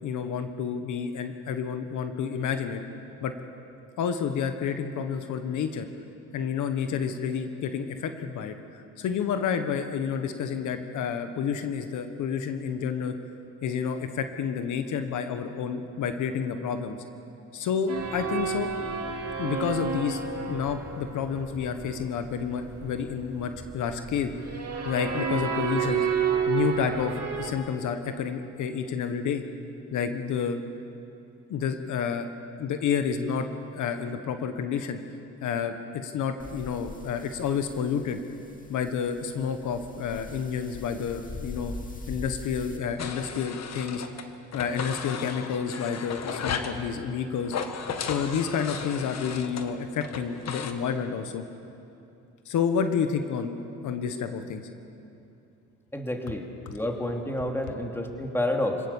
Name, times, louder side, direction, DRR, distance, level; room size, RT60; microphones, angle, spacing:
voice 1, 0.0-2.8 3.2-3.3 4.0-5.9 6.3-13.1 13.6-17.0 17.5-18.7 19.4-20.2 20.5-24.3 24.8-26.1 26.5-29.4 29.9-30.6 31.5-32.3 32.6-33.5 33.7-35.0 35.4-35.8 36.0-38.2 38.7-41.7 42.1-44.0 44.5-47.6 48.0-51.4 52.4-53.6 53.8-54.6, left 7 dB, 80° left, 8 dB, 1.4 m, -29 dB
sound 1, 17.9-27.5, right 6 dB, 55° right, 3.3 m, -31 dB
sound 2, 36.4-42.8, left 3 dB, 25° left, 2.3 m, -42 dB
sound 3, 43.0-44.2 44.5-46.8 47.4-50.7, left 6 dB, 60° left, 1.6 m, -35 dB
voice 2, 55.9-56.4 56.7-58.8, left 1 dB, 10° left, 2 dB, 2.7 m, -29 dB
25.5 x 18.0 x 7.2 m, 2.8 s
cardioid pair, 90°, 30 cm